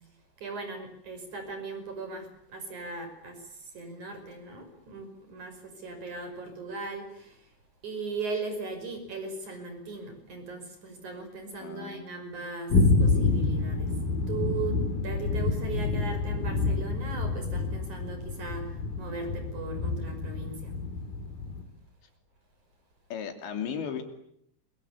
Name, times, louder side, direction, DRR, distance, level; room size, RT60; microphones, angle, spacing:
voice 1, 0.4-7.5 7.8-13.9 14.3-20.7, right 3 dB, 45° right, 6 dB, 6.7 m, -38 dB
voice 2, 11.6-12.0 23.1-24.0, left 7 dB, 80° left, 6 dB, 5.1 m, -35 dB
sound 1, 12.7-21.6, left 3 dB, 55° left, 4.8 m, -28 dB
29.0 x 23.5 x 8.6 m, 0.74 s
omnidirectional pair, 5.1 m